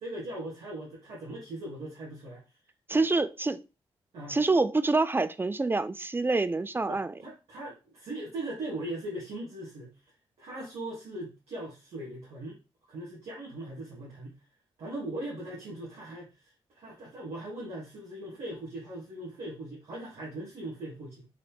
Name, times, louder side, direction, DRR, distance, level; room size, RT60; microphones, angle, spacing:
voice 1, 0.0-2.4 2.9-3.0 4.1-4.4 6.9-9.9 10.4-12.6 12.9-14.4 14.8-21.3, right 1 dB, 75° right, 1.5 m, -39 dB
voice 2, 2.9-3.6 4.3-7.1, right 3 dB, 20° right, 0.4 m, -26 dB
3.9 x 3.2 x 2.9 m
supercardioid pair, 45°, 11 cm